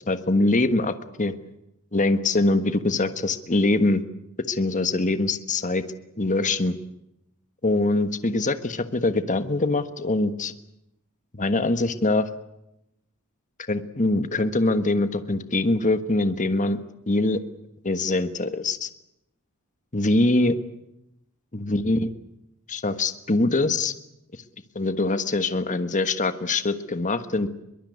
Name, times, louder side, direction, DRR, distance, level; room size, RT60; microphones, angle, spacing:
voice 1, 0.1-1.3 1.9-4.0 4.5-5.8 6.2-6.8 7.6-10.5 11.4-12.3 13.7-16.8 17.1-17.4 17.8-18.9 19.9-20.5 21.5-22.1 22.7-23.9 24.7-27.5, left 2 dB, 35° left, 10 dB, 1.4 m, -23 dB
23.0 x 22.5 x 9.5 m, 0.85 s
head